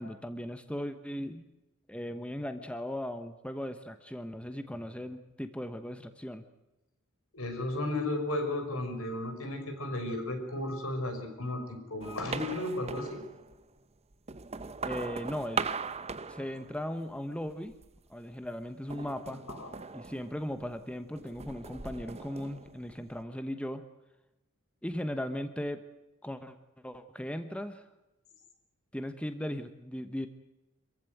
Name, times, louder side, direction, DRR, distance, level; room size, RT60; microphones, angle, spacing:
voice 1, 0.0-1.5 1.9-6.4 14.9-15.7 16.3-17.7 18.1-19.4 19.9-23.8 24.8-25.8 26.2-26.6 26.8-27.9 28.9-30.3, equal, 5° left, 9 dB, 1.1 m, -37 dB
voice 2, 7.3-13.2 19.5-19.7, left 1 dB, 70° left, 5 dB, 5.6 m, -34 dB
sound 1, 12.0-13.6 14.1-17.1 17.5-18.1 18.9-20.8 21.2-23.2, right 4 dB, 30° right, 0.9 m, -40 dB
26.5 x 15.5 x 9.3 m, 0.97 s
head